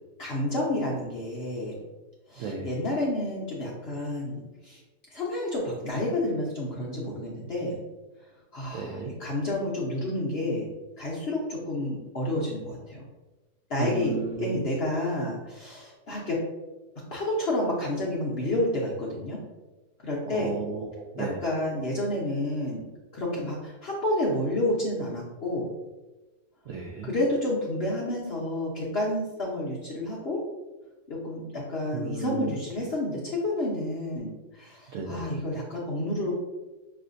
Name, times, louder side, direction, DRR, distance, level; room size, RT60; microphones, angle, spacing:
voice 1, 0.2-1.8 2.3-4.8 5.1-7.8 8.5-10.7 11.0-13.0 13.7-16.4 17.1-19.4 20.0-20.5 21.2-22.8 23.1-25.7 27.0-30.4 31.1-36.4, left 1 dB, 55° left, -5 dB, 0.7 m, -30 dB
voice 2, 2.4-2.7 8.7-9.1 13.8-14.6 20.3-21.3 26.7-27.1 31.9-32.5 34.9-35.2, right 5 dB, 70° right, 0 dB, 0.7 m, -33 dB
6.2 x 2.6 x 2.5 m, 1.1 s
omnidirectional pair, 1.8 m